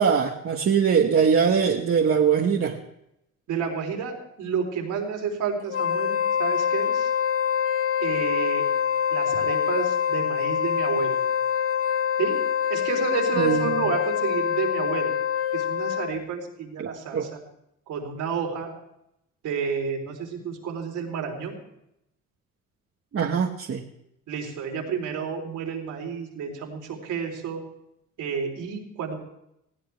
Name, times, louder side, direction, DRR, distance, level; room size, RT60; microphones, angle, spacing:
voice 1, 0.0-2.8 13.4-13.9 16.8-17.3 23.1-23.8, right 6 dB, 50° right, 1 dB, 1.4 m, -22 dB
voice 2, 3.5-7.1 8.0-8.6 9.1-11.2 12.2-12.4 12.7-15.1 15.5-17.4 17.9-18.7 19.4-21.6 24.3-27.6 28.2-29.1, right 6 dB, 80° right, 2 dB, 3.7 m, -30 dB
Wind instrument woodwind instrument, 5.7-16.3, left 8 dB, 50° left, 1.0 m, -25 dB
20.0 x 15.5 x 3.4 m, 0.80 s
cardioid pair, 90°, 30 cm